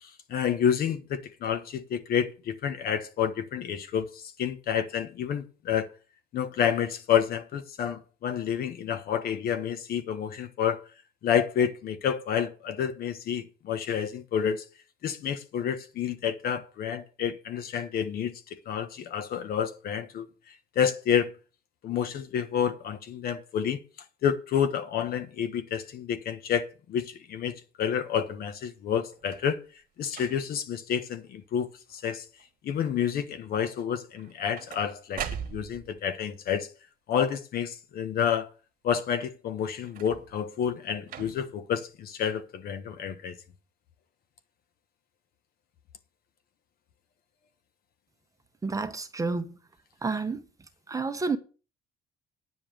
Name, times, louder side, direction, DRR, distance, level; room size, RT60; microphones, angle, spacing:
voice 1, 0.0-5.9 6.3-10.8 11.2-14.6 15.0-18.3 18.7-20.3 20.7-21.3 21.8-23.8 24.2-29.6 30.0-32.2 32.6-35.2 35.5-36.7 37.1-38.5 38.8-43.4, left 8 dB, 65° left, 1.3 m, -29 dB
sound 1, 29.1-29.5 30.1-30.6 31.2-31.6 31.9-32.4 34.1-36.0 39.8-40.5 41.1-41.6 42.5-42.6, right 9 dB, 55° right, 1.5 m, -41 dB
voice 2, 48.6-49.6 50.0-50.4 50.9-51.4, right 4 dB, 20° right, 1.2 m, -30 dB
9.5 x 5.2 x 7.8 m
cardioid pair, 110°, 17 cm